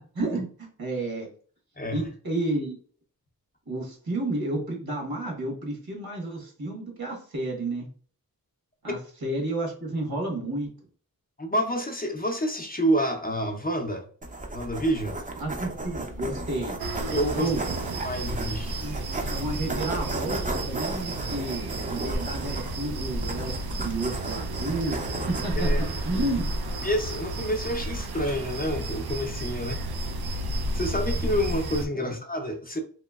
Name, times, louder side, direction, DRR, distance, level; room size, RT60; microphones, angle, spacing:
voice 1, 0.1-1.3 1.9-2.8 3.7-7.9 8.8-10.7 15.4-16.8 17.3-17.6 18.8-19.0 19.3-25.7 26.0-26.5 32.0-32.1, right 2 dB, 75° right, 0 dB, 1.3 m, -31 dB
voice 2, 11.4-14.1 14.5-15.2 17.1-17.5 18.0-18.8 25.6-26.0 26.8-29.8 30.7-32.8, equal, 25° left, 3 dB, 0.5 m, -28 dB
sound 1, 14.2-26.9, right 1 dB, 20° right, 0.5 m, -34 dB
sound 2, 16.8-31.9, right 1 dB, 90° right, 0.5 m, -32 dB
3.0 x 2.9 x 2.3 m, 0.44 s
wide cardioid pair, 115°, 37 cm